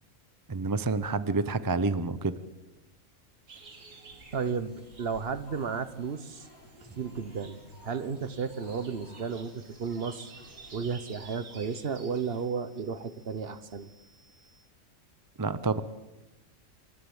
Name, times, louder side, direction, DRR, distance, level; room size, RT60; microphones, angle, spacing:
voice 1, 0.5-2.3 15.4-15.8, right 3 dB, 25° right, 13 dB, 0.5 m, -28 dB
sound 1, 3.5-12.5, right 4 dB, 65° right, 2.3 m, -53 dB
sound 2, 3.6-10.8, left 1 dB, 85° left, 4.7 m, -55 dB
voice 2, 4.3-6.5 7.0-14.3, right 5 dB, 50° right, 13 dB, 1.1 m, -34 dB
26.5 x 11.5 x 8.8 m, 1.1 s
omnidirectional pair, 1.4 m